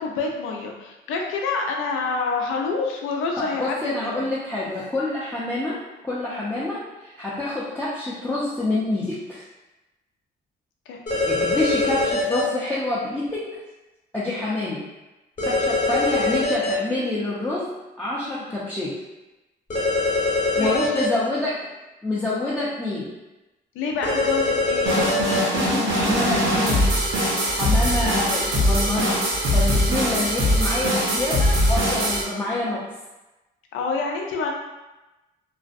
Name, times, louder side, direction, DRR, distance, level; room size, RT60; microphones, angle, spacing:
voice 1, 0.0-4.2 10.9-11.0 20.5-20.9 23.7-25.1 33.7-34.5, left 4 dB, 90° left, 1 dB, 0.5 m, -27 dB
voice 2, 3.4-5.8 6.0-9.4 11.2-13.5 14.1-14.8 15.4-17.7 18.0-18.9 20.6-21.7 22.0-23.1 25.5-26.9 27.5-29.2 29.5-32.9, left 2 dB, 10° left, -9 dB, 0.5 m, -27 dB
sound 1, 11.1-12.4 15.4-16.7 19.7-21.1 24.0-25.4, left 2 dB, 35° left, 0.9 m, -23 dB
sound 2, 24.9-32.2, equal, 90° right, 0.7 m, -21 dB
2.5 x 2.0 x 2.5 m, 1.1 s
cardioid pair, 90°, 20 cm